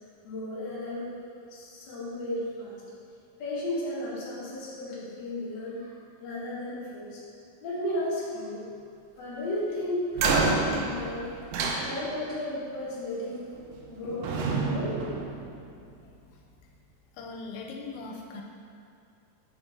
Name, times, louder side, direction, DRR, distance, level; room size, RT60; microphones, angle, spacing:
voice 1, 0.2-1.1 1.5-2.7 3.4-5.9 6.2-7.2 7.6-8.6 9.2-10.5 10.8-11.4 11.8-13.5 13.9-15.1, left 1 dB, 50° left, -8 dB, 1.3 m, -34 dB
sound 1, 10.1-12.4 13.5-13.9 14.2-16.0, right 3 dB, 80° right, 2.2 m, -29 dB
voice 2, 17.2-18.4, left 3 dB, 90° left, 1 dB, 2.4 m, -39 dB
6.0 x 4.5 x 4.4 m, 2.4 s
omnidirectional pair, 4.2 m